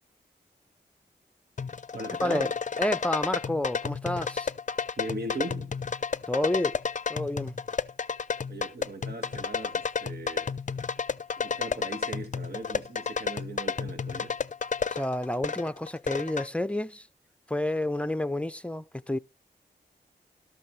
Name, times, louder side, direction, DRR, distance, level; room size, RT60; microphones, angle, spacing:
sound 1, 1.6-16.5, left 6 dB, 45° left, 0.5 m, -32 dB
voice 1, 1.9-2.5 5.0-5.7 8.5-10.5 11.4-14.4, right 2 dB, 65° right, 1.9 m, -39 dB
voice 2, 2.8-4.5 6.3-6.8 7.1-7.6 14.9-17.1 17.5-19.2, left 1 dB, 5° left, 0.7 m, -29 dB
12.5 x 11.5 x 3.3 m
wide cardioid pair, 65°, 18 cm